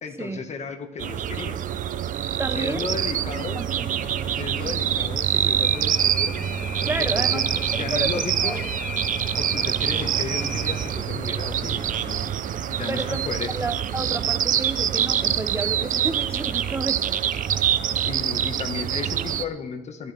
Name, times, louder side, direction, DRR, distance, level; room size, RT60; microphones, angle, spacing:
voice 1, 0.0-1.6 2.5-3.6 4.3-6.3 7.0-7.4 7.7-8.6 9.4-13.5 18.0-20.1, left 5 dB, 40° left, 6 dB, 1.6 m, -34 dB
sound 1, 1.0-19.4, right 10 dB, 50° right, 0.7 m, -25 dB
voice 2, 2.4-3.0 3.5-3.9 6.8-7.6 7.9-8.6 12.9-13.2 13.5-17.2, right 2 dB, 15° right, 9 dB, 0.8 m, -31 dB
sound 2, 3.8-12.4, left 3 dB, 5° left, 1.6 m, -37 dB
20.0 x 13.5 x 3.5 m, 1.0 s
cardioid pair, 110°, 17 cm